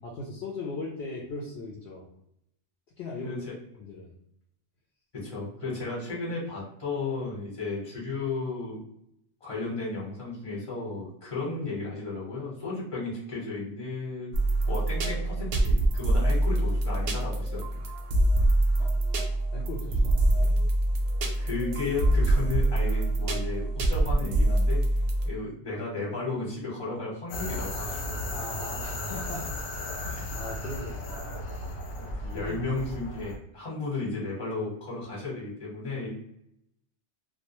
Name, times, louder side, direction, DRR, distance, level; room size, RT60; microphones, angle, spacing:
voice 1, 0.0-2.1 3.0-3.4 3.8-4.1 18.8-18.9 19.5-20.6 28.3-31.5 32.3-32.8 33.2-33.3, left 2 dB, 65° left, -3 dB, 0.7 m, -39 dB
voice 2, 5.1-8.8 9.4-14.3 14.7-17.9 21.4-24.9 25.2-28.1 32.0-36.1, left 3 dB, 30° left, -5 dB, 1.0 m, -34 dB
sound 1, 14.3-25.3, right 1 dB, 65° right, 0.7 m, -25 dB
sound 2, 27.3-33.3, left 1 dB, 90° left, 1.0 m, -35 dB
2.3 x 2.2 x 2.9 m, 0.75 s
omnidirectional pair, 1.3 m